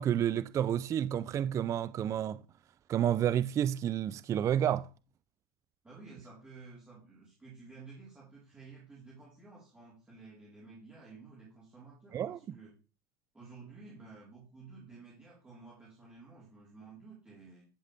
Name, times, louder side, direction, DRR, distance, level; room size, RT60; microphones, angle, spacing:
voice 1, 0.0-2.4 2.9-4.9 12.1-12.4, right 10 dB, 25° right, 0.4 m, -30 dB
voice 2, 5.8-12.7 13.3-17.7, right 4 dB, 10° right, 4.0 m, -52 dB
11.5 x 7.3 x 3.4 m
supercardioid pair, 125°, 12 cm